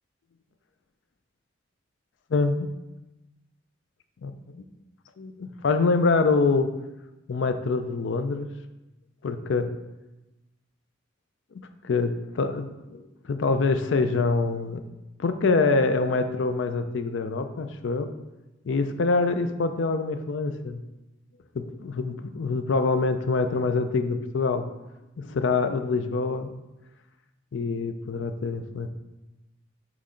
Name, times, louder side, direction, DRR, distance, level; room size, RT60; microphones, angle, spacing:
voice 1, 2.3-2.7 4.2-4.6 5.2-6.7 7.3-8.5 9.2-9.7 11.5-14.8 15.2-18.1 18.6-20.8 21.5-24.7 25.2-26.5 27.5-28.9, left 3 dB, 75° left, 9 dB, 0.4 m, -25 dB
8.1 x 3.2 x 3.8 m, 1.0 s
head